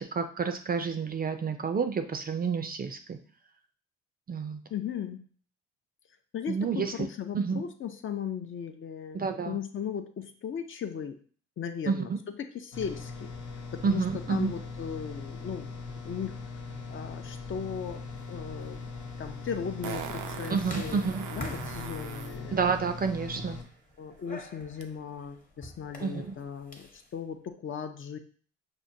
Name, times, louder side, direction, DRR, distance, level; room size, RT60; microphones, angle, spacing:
voice 1, 0.0-3.2 4.3-4.6 6.5-7.1 7.3-7.6 9.1-9.6 11.9-12.2 13.8-14.5 20.5-21.3 22.5-23.6 26.0-26.3, right 5 dB, 30° right, 7 dB, 0.4 m, -29 dB
voice 2, 4.7-5.2 6.3-11.2 11.6-12.1 12.4-13.3 13.7-14.0 14.3-15.7 16.0-16.4 16.9-18.0 18.3-18.8 19.2-22.6 24.0-28.2, left 7 dB, 45° left, 6 dB, 0.5 m, -37 dB
sound 1, 12.7-23.6, left 4 dB, 80° left, 0.9 m, -40 dB
sound 2, 18.0-27.1, left 1 dB, 25° left, 0.9 m, -47 dB
Fart, 18.7-18.8 19.8-22.4 24.8-24.9, right 8 dB, 90° right, 0.5 m, -40 dB
6.0 x 2.2 x 2.6 m, 0.43 s
cardioid pair, 90°, 30 cm